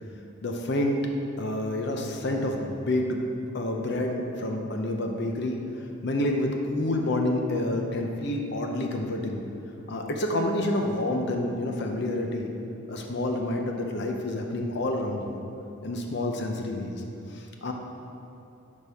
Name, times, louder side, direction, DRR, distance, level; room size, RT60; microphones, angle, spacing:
voice 1, 0.4-1.0 1.4-3.3 3.5-5.6 6.0-9.4 9.9-12.5 12.9-15.4 15.8-17.0 17.3-17.7, left 1 dB, 55° left, 2 dB, 0.7 m, -28 dB
11.0 x 5.4 x 3.5 m, 2.8 s
head